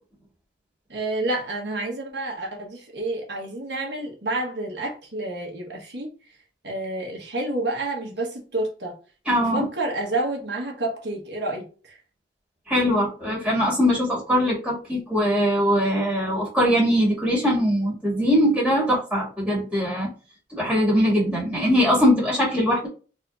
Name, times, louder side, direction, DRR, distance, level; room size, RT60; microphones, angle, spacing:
voice 1, 0.9-6.1 6.6-9.0 9.4-12.0, right 2 dB, 65° right, 1.4 m, -29 dB
voice 2, 9.3-9.6 12.7-20.1 20.5-22.9, equal, 5° right, 2.2 m, -21 dB
4.3 x 3.6 x 2.5 m
head